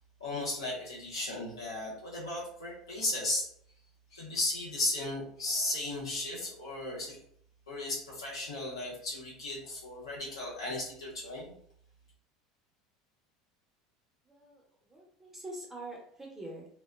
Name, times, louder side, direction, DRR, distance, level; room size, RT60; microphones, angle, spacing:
voice 1, 0.2-3.5 4.1-7.2 7.7-11.5, left 2 dB, 85° left, -5 dB, 1.0 m, -35 dB
voice 2, 14.3-14.6 14.9-16.7, right 1 dB, 10° right, -2 dB, 0.9 m, -44 dB
2.5 x 2.2 x 2.3 m, 0.65 s
hypercardioid pair, 75°, 3 cm